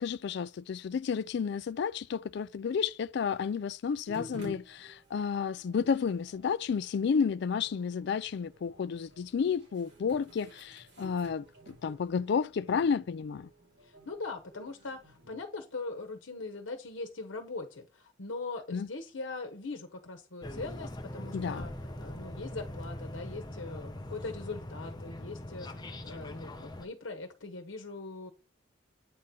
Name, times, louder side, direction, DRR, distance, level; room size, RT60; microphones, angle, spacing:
voice 1, 0.0-13.5 18.7-18.9 21.3-21.7, left 6 dB, 60° left, 0.3 m, -31 dB
sound 1, 4.1-15.4, left 1 dB, 60° right, 3.0 m, -51 dB
voice 2, 13.8-21.7 22.0-28.3, left 3 dB, 85° left, 1.0 m, -41 dB
sound 2, 20.4-26.9, left 1 dB, 20° left, 0.8 m, -42 dB
8.6 x 3.8 x 4.2 m
head